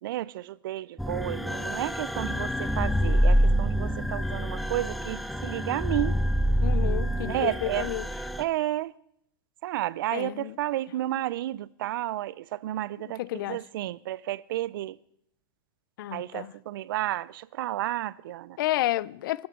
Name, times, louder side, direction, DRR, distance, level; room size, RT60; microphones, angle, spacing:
voice 1, 0.0-6.2 7.2-7.9 8.4-8.9 9.6-15.0 16.1-18.6, right 15 dB, 75° right, 0.6 m, -32 dB
sound 1, 1.0-8.4, equal, ahead, 0.6 m, -26 dB
voice 2, 6.6-8.1 10.1-10.6 13.2-13.6 16.0-16.5 18.6-19.5, left 15 dB, 75° left, 0.5 m, -30 dB
21.5 x 13.0 x 3.8 m
supercardioid pair, 160°, 12 cm